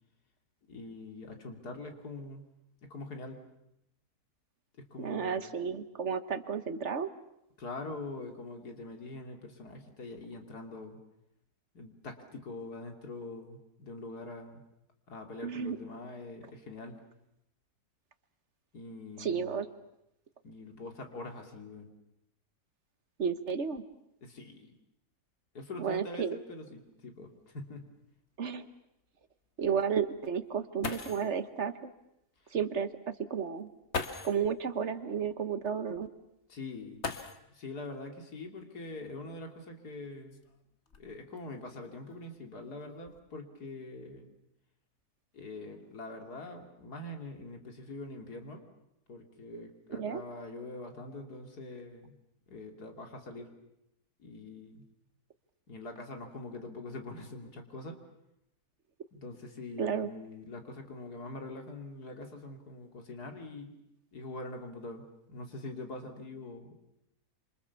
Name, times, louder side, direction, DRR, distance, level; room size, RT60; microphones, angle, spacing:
voice 1, 0.7-2.4 2.8-3.4 4.8-5.5 7.6-11.0 11.7-14.6 15.1-17.0 18.7-19.6 20.4-21.9 24.2-24.7 25.5-27.9 32.4-32.6 36.5-37.0 37.5-40.4 41.0-44.3 45.3-48.6 49.1-52.2 52.5-53.5 54.2-54.8 55.7-57.9 59.1-63.7 64.1-66.7, left 2 dB, 75° left, 4 dB, 3.3 m, -44 dB
voice 2, 5.0-7.1 15.4-15.8 19.2-19.7 23.2-23.9 25.8-26.4 28.4-28.7 29.6-31.7 32.5-33.7 34.2-36.1 49.5-49.7 50.0-50.2 59.8-60.1, right 7 dB, 50° right, 11 dB, 1.4 m, -32 dB
sound 1, 26.9-27.0 27.4-27.5 28.1-28.2 30.5-30.6 30.8-31.4 32.7-32.8 33.9-34.5 37.0-37.7 39.1-39.2 39.9-41.4 42.1-42.4 42.8-43.2, left 4 dB, 45° left, 1.7 m, -40 dB
27.0 x 27.0 x 7.1 m, 0.81 s
omnidirectional pair, 1.7 m